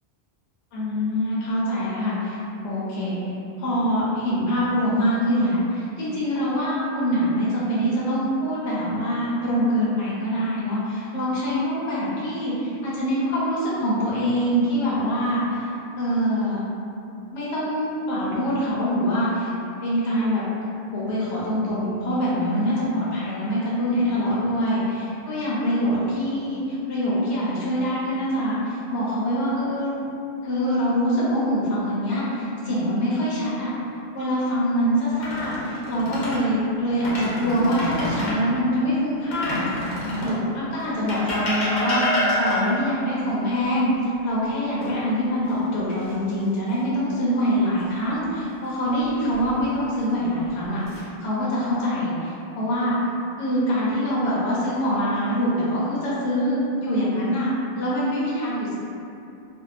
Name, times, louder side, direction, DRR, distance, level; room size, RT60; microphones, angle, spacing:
voice 1, 0.7-3.2 3.6-15.7 16.0-16.6 17.3-19.5 19.8-20.4 20.9-29.9 30.4-33.7 34.1-53.0 53.4-57.5 57.8-58.7, equal, 80° left, -8 dB, 0.9 m, -24 dB
sound 1, 35.1-36.4 36.9-38.4 39.3-40.4 41.1-42.9 44.8-45.5 45.9-46.1 49.0-49.6 50.4-51.0, left 1 dB, 50° left, 0.6 m, -28 dB
2.7 x 2.2 x 2.3 m, 2.7 s
omnidirectional pair, 1.2 m